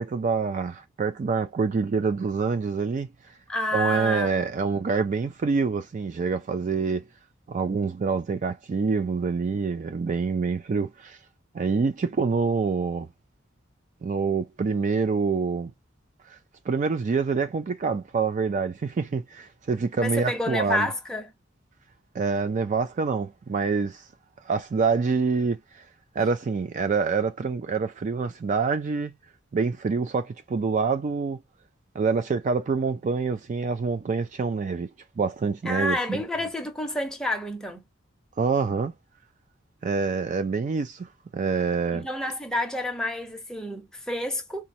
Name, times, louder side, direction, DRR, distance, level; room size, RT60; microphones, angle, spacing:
voice 1, 0.0-3.3 3.7-7.1 7.5-11.2 11.5-13.1 14.0-15.7 16.3-16.4 16.7-20.9 22.1-24.1 24.4-25.9 26.1-29.1 29.5-31.4 31.9-34.9 35.2-36.2 38.4-38.9 39.8-42.1, right 4 dB, 40° right, 0.3 m, -26 dB
voice 2, 3.5-4.4 20.0-21.3 35.7-37.8 41.9-44.6, left 1 dB, 5° left, 0.8 m, -29 dB
4.1 x 2.2 x 2.7 m
head